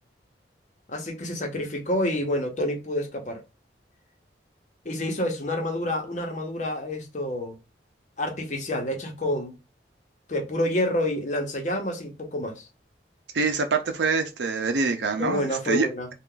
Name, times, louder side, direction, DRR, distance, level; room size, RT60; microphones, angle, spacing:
voice 1, 0.9-3.4 4.8-7.6 8.2-9.6 10.3-12.7 15.2-16.1, left 1 dB, 45° left, 1.0 m, -28 dB
voice 2, 13.3-15.9, right 4 dB, 80° right, 0.6 m, -25 dB
3.4 x 2.4 x 3.8 m
head